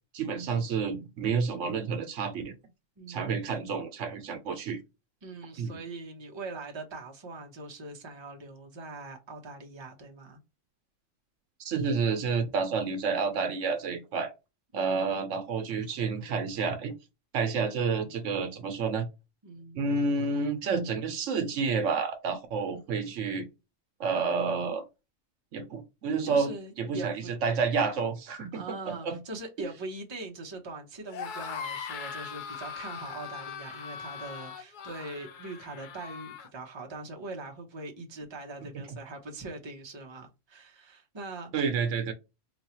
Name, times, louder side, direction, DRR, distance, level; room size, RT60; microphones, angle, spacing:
voice 1, 0.1-2.5 3.1-4.8 5.6-5.8 11.6-14.3 14.7-16.9 17.3-19.0 19.7-23.5 24.0-24.8 25.5-26.5 26.8-27.1 27.4-29.2 41.5-42.1, right 5 dB, 75° right, 1.1 m, -29 dB
voice 2, 3.0-3.5 5.2-10.4 12.7-12.9 14.7-15.3 19.4-19.8 26.2-27.4 28.5-41.5, right 2 dB, 25° right, 0.8 m, -42 dB
sound 1, 31.0-36.5, left 7 dB, 60° left, 0.5 m, -40 dB
4.1 x 2.3 x 2.9 m
omnidirectional pair, 1.3 m